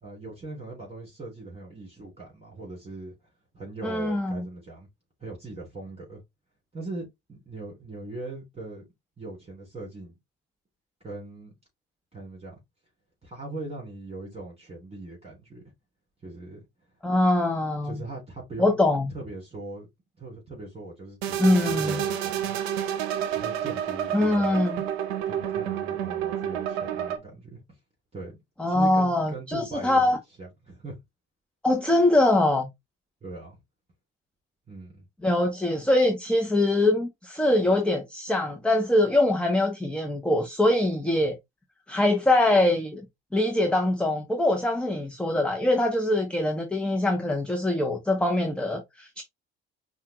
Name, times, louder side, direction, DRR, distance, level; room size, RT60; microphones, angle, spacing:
voice 1, 0.0-3.1 3.5-4.9 5.2-6.2 6.7-8.8 9.2-10.1 11.0-11.5 12.1-12.5 13.2-15.6 16.2-16.6 17.8-18.8 19.1-19.9 20.2-22.6 23.3-24.6 25.2-27.6 28.1-28.3 28.7-30.1 30.4-31.0 33.2-33.6 34.7-35.0, right 2 dB, 20° right, 3.1 m, -40 dB
voice 2, 3.8-4.4 17.0-18.0 18.6-19.1 21.4-22.0 24.1-24.8 28.6-30.2 31.6-32.7 35.2-41.3 41.9-43.0 43.3-49.2, left 1 dB, 5° left, 0.9 m, -23 dB
sound 1, 21.2-27.2, right 10 dB, 85° right, 0.7 m, -29 dB
5.5 x 2.4 x 3.0 m
hypercardioid pair, 60°, 30 cm